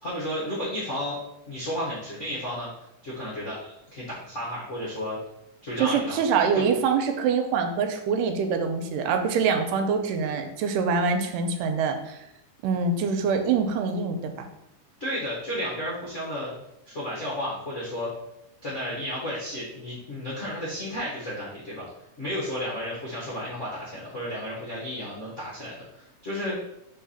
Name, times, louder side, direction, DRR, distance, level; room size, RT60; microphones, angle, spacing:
voice 1, 0.0-1.2 1.5-2.7 3.0-5.2 5.6-6.2 6.5-6.7 15.0-16.5 16.9-18.1 18.6-21.8 22.2-26.5, equal, 60° left, -6 dB, 0.7 m, -32 dB
voice 2, 5.8-12.2 12.6-14.5, right 5 dB, 90° right, 6 dB, 2.3 m, -25 dB
4.7 x 3.9 x 5.6 m, 0.83 s
omnidirectional pair, 3.8 m